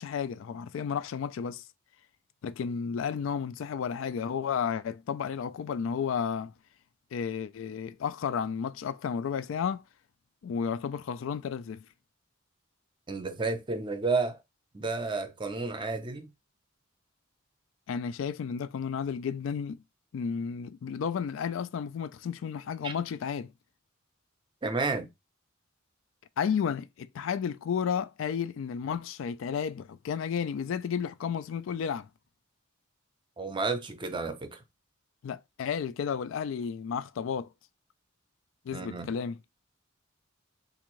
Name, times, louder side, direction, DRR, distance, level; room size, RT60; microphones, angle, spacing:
voice 1, 0.0-1.6 2.4-6.5 7.1-9.8 10.4-11.8 17.9-19.8 20.1-23.5 26.4-32.1 35.2-37.5 38.7-39.4, left 7 dB, 65° left, 0.3 m, -32 dB
voice 2, 13.1-14.4 14.7-16.3 22.8-22.9 24.6-25.1 33.4-34.6 38.7-39.1, right 3 dB, 25° right, 0.6 m, -31 dB
3.6 x 2.5 x 3.0 m
head